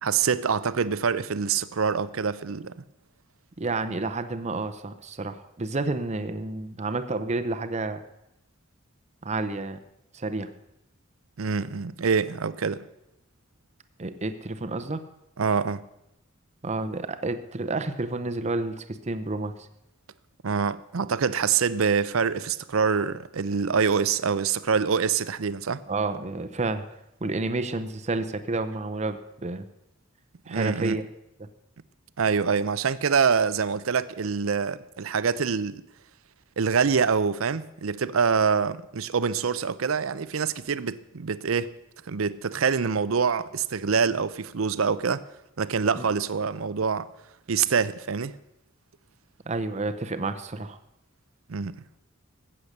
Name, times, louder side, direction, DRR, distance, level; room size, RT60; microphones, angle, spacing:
voice 1, 0.0-2.8 11.4-12.8 15.4-15.8 20.4-25.8 30.5-31.0 32.2-35.8 36.6-41.7 42.1-45.2 45.6-47.1 47.5-48.4 51.5-51.8, right 6 dB, 75° right, 0.6 m, -25 dB
voice 2, 3.6-8.0 9.2-9.8 10.1-10.5 14.0-15.0 16.6-19.5 25.9-26.9 27.2-29.6 30.5-31.0 31.4-31.5 46.0-46.1 49.5-50.8, right 3 dB, 35° right, 0.7 m, -30 dB
14.5 x 8.7 x 6.6 m
head